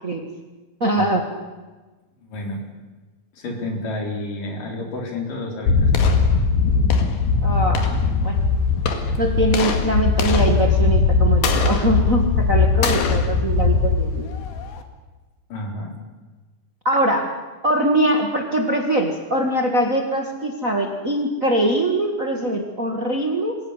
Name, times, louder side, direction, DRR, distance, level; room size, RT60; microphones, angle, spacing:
voice 1, 0.8-1.3 7.4-7.9 8.2-8.4 9.2-14.3 16.8-17.3 17.6-23.6, right 1 dB, 35° right, 4 dB, 1.5 m, -22 dB
voice 2, 2.2-2.6 3.4-6.3 15.5-16.0, left 1 dB, 65° left, 2 dB, 5.3 m, -30 dB
sound 1, 5.7-14.8, left 4 dB, 90° left, 3.7 m, -19 dB
24.5 x 16.5 x 9.7 m, 1.2 s
omnidirectional pair, 4.1 m